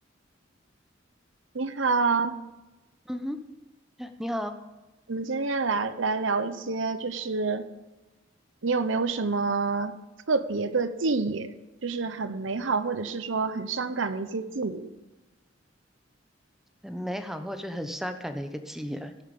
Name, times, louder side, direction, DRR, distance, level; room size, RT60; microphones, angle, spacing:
voice 1, 1.5-2.4 5.1-7.6 8.6-9.9 10.3-11.5 11.8-14.9, right 4 dB, 80° right, 12 dB, 0.8 m, -27 dB
voice 2, 3.1-3.4 4.0-4.5 16.8-19.2, equal, ahead, 7 dB, 0.8 m, -34 dB
17.0 x 7.3 x 5.3 m, 1.1 s
head